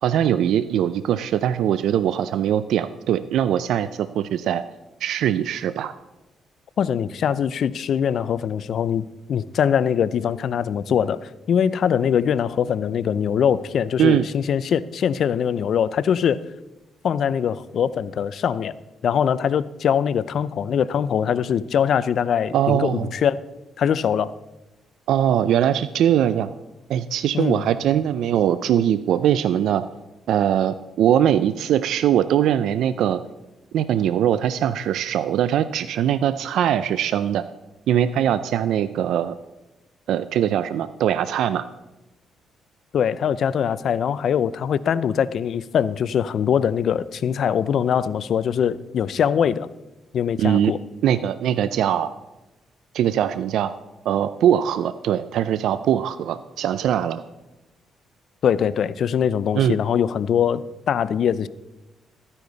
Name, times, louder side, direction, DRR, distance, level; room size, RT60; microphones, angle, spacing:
voice 1, 0.0-4.6 5.0-5.9 14.0-14.3 22.5-23.1 25.1-26.5 26.9-29.8 30.3-33.2 33.7-37.4 37.9-39.4 40.1-41.7 50.4-50.7 51.0-52.1 52.9-53.7 54.1-57.2 59.5-59.8, right 10 dB, 80° right, 13 dB, 0.4 m, -21 dB
voice 2, 6.8-16.4 17.0-18.7 19.0-23.4 23.8-24.4 27.3-27.7 42.9-49.7 50.1-50.8 58.4-61.5, left 8 dB, 60° left, 17 dB, 0.5 m, -22 dB
13.5 x 9.9 x 4.0 m, 1.0 s
cardioid pair, 90°, 0 cm